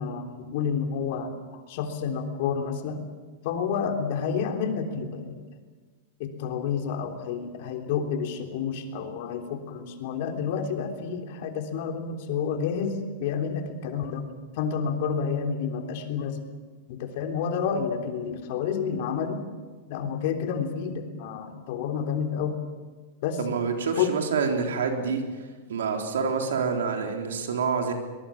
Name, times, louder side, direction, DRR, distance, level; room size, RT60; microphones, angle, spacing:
voice 1, 0.0-1.3 1.7-3.0 3.4-5.4 6.2-14.3 14.6-16.5 16.9-19.4 19.9-22.6 23.2-23.4 24.0-24.2, left 6 dB, 60° left, 5 dB, 3.4 m, -29 dB
voice 2, 23.4-25.2 25.7-27.9, right 5 dB, 80° right, 4 dB, 3.7 m, -27 dB
23.5 x 21.0 x 7.3 m, 1.4 s
hypercardioid pair, 110°, 0 cm